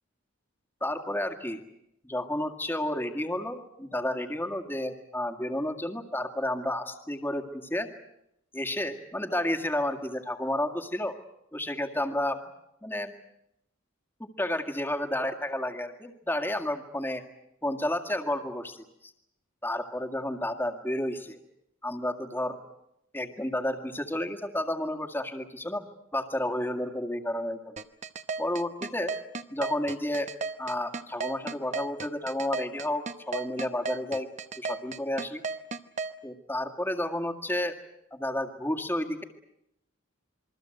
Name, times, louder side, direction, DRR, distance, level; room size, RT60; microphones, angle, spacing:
voice 1, 0.8-1.6 2.0-7.9 8.5-11.2 11.5-12.4 12.8-13.1 14.2-17.2 17.6-19.1 19.6-21.4 21.8-22.6 23.1-25.9 26.1-27.7 28.4-29.1 29.5-30.3 30.6-34.3 34.6-35.4 36.2-37.8 38.1-39.2, left 1 dB, 10° left, 6 dB, 1.9 m, -31 dB
sound 1, 27.8-36.1, right 4 dB, 35° right, 1.0 m, -34 dB
28.0 x 22.5 x 7.9 m, 0.78 s
head